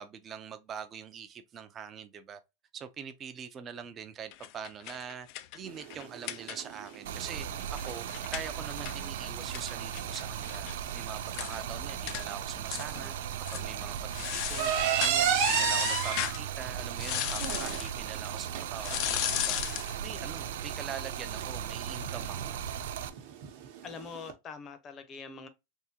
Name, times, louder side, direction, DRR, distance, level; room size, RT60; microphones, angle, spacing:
voice 1, 0.0-2.4 2.7-14.7 15.0-22.6, right 7 dB, 25° right, 0.5 m, -43 dB
sound 1, 4.3-6.9 7.2-7.3 7.6-10.7 11.0-11.1 11.3-11.6 12.1-12.2 12.7-13.1 13.4-13.7 14.1-16.4 17.0-17.9 18.8-19.9, left 13 dB, 50° left, 0.4 m, -35 dB
sound 2, 5.7-24.3, right 8 dB, 60° right, 0.9 m, -35 dB
Stream, 7.0-23.1, right 8 dB, 80° right, 0.4 m, -37 dB
voice 2, 23.8-25.5, left 5 dB, 30° left, 0.8 m, -43 dB
3.6 x 2.6 x 2.8 m
supercardioid pair, 140°, 0 cm